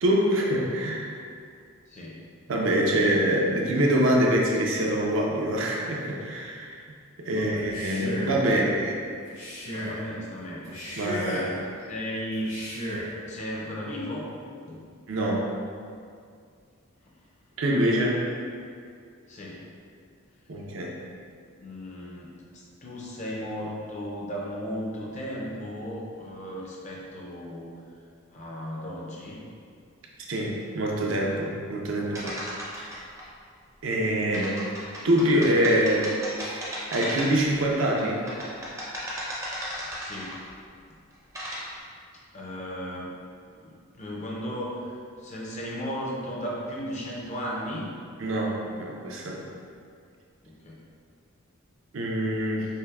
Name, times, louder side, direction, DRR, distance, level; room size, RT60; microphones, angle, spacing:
voice 1, 0.0-1.1 2.5-6.8 7.2-8.9 11.0-11.2 15.1-15.4 17.6-18.2 20.5-21.0 30.3-32.4 32.8-33.0 33.8-34.6 35.0-38.2 48.2-49.4 51.9-52.7, right 1 dB, 65° right, -1 dB, 0.5 m, -25 dB
voice 2, 7.2-7.7 8.4-8.9 9.7-10.6 11.0-12.6 13.3-14.3 14.7-14.9 19.3-19.6 21.6-27.8 28.3-29.4 40.0-40.4 42.3-43.1 43.4-47.9 50.4-50.8, equal, 35° left, -4 dB, 0.5 m, -35 dB
Male speech man speaking, 7.6-8.5 9.3-10.0 10.6-11.6 12.4-13.1, equal, 85° left, 1.5 m, -34 dB
sound 1, 32.1-33.2 34.3-37.5 38.0-40.5 41.1-41.6, equal, 15° right, 0.5 m, -35 dB
5.4 x 2.0 x 2.3 m, 2.3 s
head